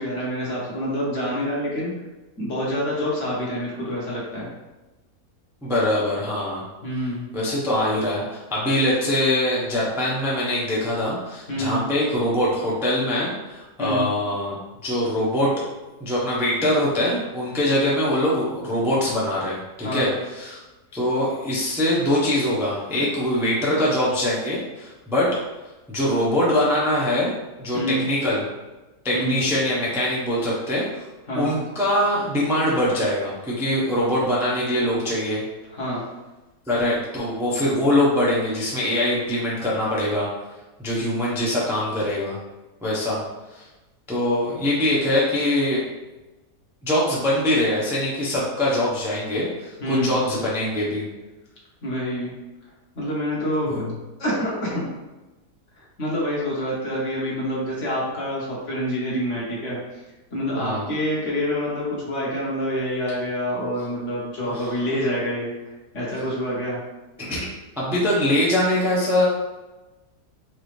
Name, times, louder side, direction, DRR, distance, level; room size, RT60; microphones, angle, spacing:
voice 1, 0.0-1.9 2.4-4.5 6.8-7.3 11.5-11.8 13.8-14.1 19.8-20.1 22.9-23.1 27.7-28.1 29.1-29.4 31.3-31.6 35.7-36.0 49.8-50.2 51.8-52.3 53.0-53.8 54.2-54.9 55.8-60.0 60.3-66.8, equal, 50° left, -5 dB, 1.3 m, -27 dB
voice 2, 5.6-6.6 7.3-14.6 14.8-15.5 16.0-20.6 20.9-25.3 25.9-27.3 27.6-28.4 29.0-31.0 31.3-35.4 36.7-40.3 40.8-42.4 42.8-43.2 43.5-43.6 44.1-45.8 46.8-51.0 53.7-53.9 60.6-60.8 64.5-64.8 67.2-69.2, left 1 dB, 5° right, -7 dB, 0.5 m, -23 dB
4.8 x 2.7 x 3.2 m, 1.1 s
omnidirectional pair, 1.8 m